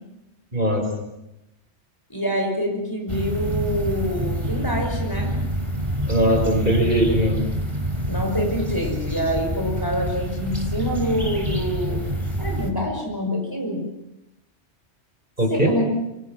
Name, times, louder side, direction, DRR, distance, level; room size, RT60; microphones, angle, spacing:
voice 1, 0.5-0.8 6.1-7.4 15.4-15.7, right 1 dB, 45° right, 2 dB, 5.4 m, -20 dB
voice 2, 2.1-5.3 8.1-12.1 12.4-13.8 15.5-15.9, equal, 20° left, 1 dB, 5.6 m, -26 dB
sound 1, 3.1-12.7, equal, 25° right, 3.7 m, -27 dB
25.5 x 23.0 x 7.5 m, 0.90 s
omnidirectional pair, 1.2 m